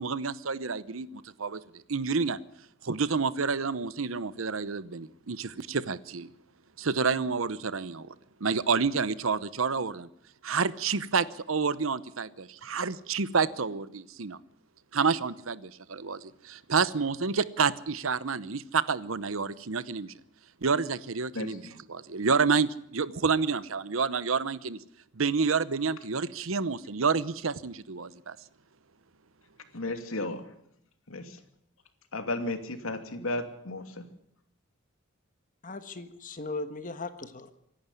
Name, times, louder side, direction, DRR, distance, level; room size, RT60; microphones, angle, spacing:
voice 1, 0.0-2.4 2.8-6.3 6.8-8.1 8.4-10.1 10.4-14.4 14.9-20.1 20.6-21.6 21.9-24.8 25.2-28.4, right 5 dB, 75° right, 16 dB, 0.9 m, -29 dB
voice 2, 21.3-21.8 29.7-30.5 31.1-31.4 32.1-34.1, left 2 dB, 80° left, 7 dB, 2.7 m, -34 dB
voice 3, 35.6-37.5, left 3 dB, 40° left, 9 dB, 1.5 m, -38 dB
25.5 x 11.5 x 9.8 m, 0.76 s
head